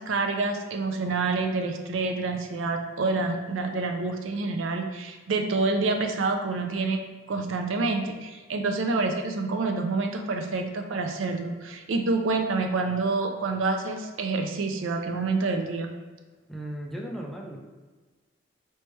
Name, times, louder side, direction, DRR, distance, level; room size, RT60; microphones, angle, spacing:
voice 1, 0.0-7.0 7.3-15.9, right 3 dB, 80° right, 5 dB, 0.4 m, -27 dB
voice 2, 16.5-17.6, right 1 dB, ahead, -1 dB, 0.4 m, -36 dB
3.2 x 3.1 x 3.1 m, 1.3 s
head